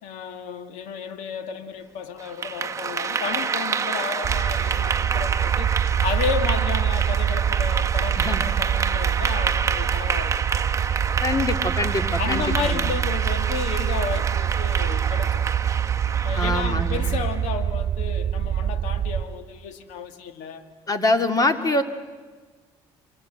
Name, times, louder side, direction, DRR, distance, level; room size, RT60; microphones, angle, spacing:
voice 1, 0.0-10.5 12.2-15.5 16.2-20.6, left 7 dB, 80° left, 9 dB, 1.9 m, -32 dB
Clapping / Applause, 2.2-17.5, right 5 dB, 25° right, 1.0 m, -28 dB
sound 1, 4.2-19.2, right 9 dB, 45° right, 1.3 m, -25 dB
voice 2, 11.2-12.9 16.4-17.1 20.9-21.8, left 2 dB, 30° left, 8 dB, 2.4 m, -24 dB
27.5 x 26.0 x 7.9 m, 1.4 s
supercardioid pair, 90°, 12 cm